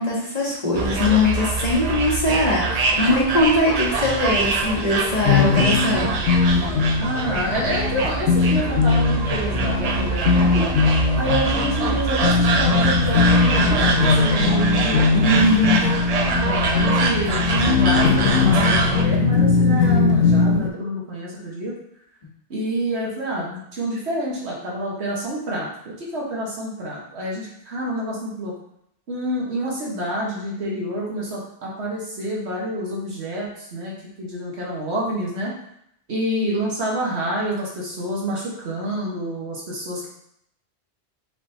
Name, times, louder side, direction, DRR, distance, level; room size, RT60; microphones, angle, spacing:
voice 1, 0.0-6.2 15.2-15.9, left 2 dB, 40° left, -4 dB, 1.1 m, -21 dB
sound 1, 0.7-19.0, right 4 dB, 55° right, 0.4 m, -24 dB
sound 2, 5.2-20.7, left 5 dB, 80° left, 0.9 m, -20 dB
voice 2, 6.9-10.7 11.1-15.1 16.1-21.7 22.5-28.5 29.1-35.5 36.1-40.1, right 1 dB, 75° right, -4 dB, 1.5 m, -28 dB
5.0 x 3.5 x 2.7 m, 0.74 s
omnidirectional pair, 1.1 m